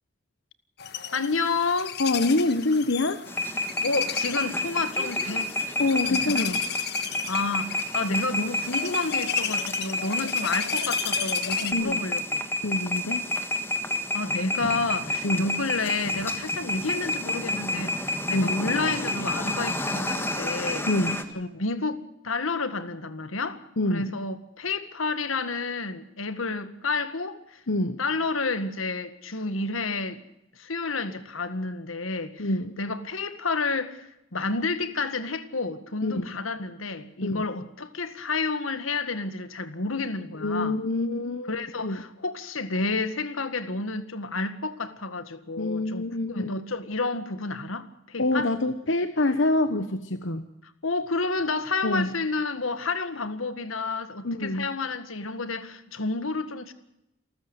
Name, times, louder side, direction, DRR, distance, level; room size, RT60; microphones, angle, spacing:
sound 1, 0.8-11.7, left 9 dB, 50° left, 1.4 m, -34 dB
voice 1, 1.1-2.0 3.8-5.5 6.1-6.5 7.3-12.5 14.1-20.9 21.3-22.0 22.2-23.6 23.9-27.6 28.0-30.2 30.6-32.5 32.8-40.8 41.5-48.5 50.8-56.7, left 3 dB, 85° left, 1.8 m, -30 dB
voice 2, 2.0-3.2 5.8-6.6 11.7-12.0 12.6-13.3 15.2-15.5 18.3-18.6 20.9-21.2 23.8-24.1 27.7-28.0 32.4-32.7 36.0-36.4 37.2-37.5 40.4-42.0 45.6-46.5 48.2-50.5 51.8-52.1 54.2-54.7, left 2 dB, 70° left, 1.1 m, -26 dB
sound 2, 3.3-21.2, left 1 dB, 10° left, 1.6 m, -29 dB
28.5 x 13.5 x 8.1 m
head